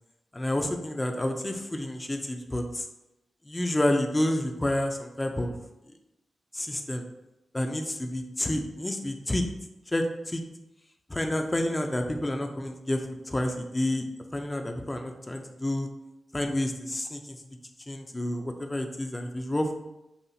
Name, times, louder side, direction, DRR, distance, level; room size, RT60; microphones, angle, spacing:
voice 1, 0.3-2.9 3.4-5.5 6.5-7.0 7.5-9.5 9.9-10.4 11.1-14.0 14.3-15.9 16.3-17.4 17.9-19.7, left 1 dB, 20° left, 4 dB, 0.5 m, -29 dB
5.5 x 2.4 x 2.8 m, 0.93 s
cardioid pair, 60°, 0 cm